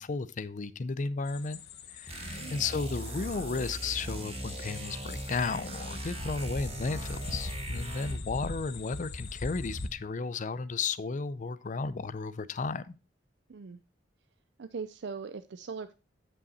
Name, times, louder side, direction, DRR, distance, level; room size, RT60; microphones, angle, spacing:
voice 1, 0.0-1.6 1.9-12.9, left 4 dB, 45° left, 0.5 m, -34 dB
sound 1, 1.3-9.9, left 2 dB, 60° left, 1.0 m, -41 dB
sound 2, 2.1-8.3, right 1 dB, 35° right, 1.3 m, -39 dB
voice 2, 2.2-2.7 13.5-13.8 14.6-15.9, right 5 dB, 65° right, 0.5 m, -40 dB
9.6 x 5.5 x 4.2 m
head